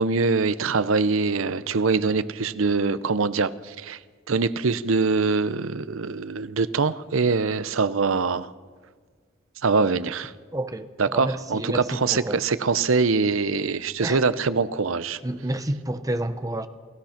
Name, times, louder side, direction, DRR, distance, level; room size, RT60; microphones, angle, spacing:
voice 1, 0.0-4.0 4.3-8.5 9.6-10.3 11.0-15.2, right 4 dB, 85° right, 0.7 m, -23 dB
voice 2, 10.5-12.4 14.0-14.2 15.2-16.7, right 1 dB, 15° right, 1.0 m, -29 dB
28.5 x 17.0 x 5.9 m
head